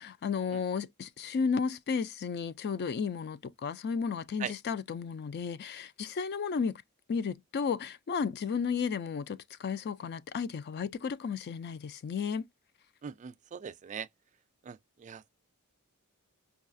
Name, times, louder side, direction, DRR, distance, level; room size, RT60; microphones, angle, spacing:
voice 1, 0.0-6.8 7.1-12.5, left 6 dB, 45° left, 0.4 m, -33 dB
voice 2, 13.0-14.1 14.6-15.3, right 7 dB, 35° right, 0.3 m, -41 dB
5.4 x 2.3 x 2.5 m
head